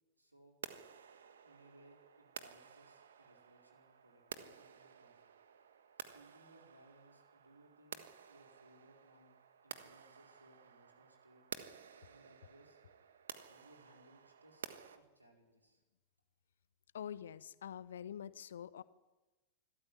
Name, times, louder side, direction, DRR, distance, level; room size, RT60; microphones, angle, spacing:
voice 1, 0.2-0.6 1.4-5.3 6.0-9.3 9.6-11.4 12.1-12.8 13.4-14.6 14.9-15.8, right 1 dB, 85° right, 2 dB, 4.5 m, -65 dB
sound 1, 0.6-15.0, right 7 dB, 65° right, 1.4 m, -53 dB
voice 2, 16.9-18.8, left 9 dB, 65° left, 17 dB, 0.9 m, -46 dB
25.0 x 13.5 x 9.9 m, 1.2 s
figure-of-eight pair, 90°, 0 cm